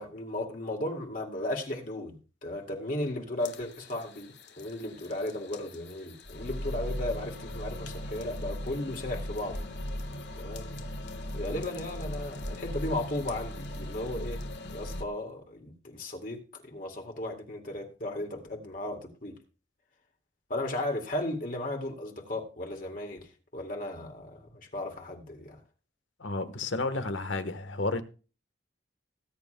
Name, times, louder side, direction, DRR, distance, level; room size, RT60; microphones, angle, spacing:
voice 1, 0.0-9.7 10.4-10.8 11.3-14.4 14.7-19.4 20.5-25.6, left 1 dB, 45° left, 2.1 m, -35 dB
sound 1, 3.4-15.0, left 1 dB, 60° left, 1.5 m, -39 dB
voice 2, 26.2-28.0, left 2 dB, 80° left, 1.3 m, -31 dB
19.5 x 9.7 x 2.2 m
head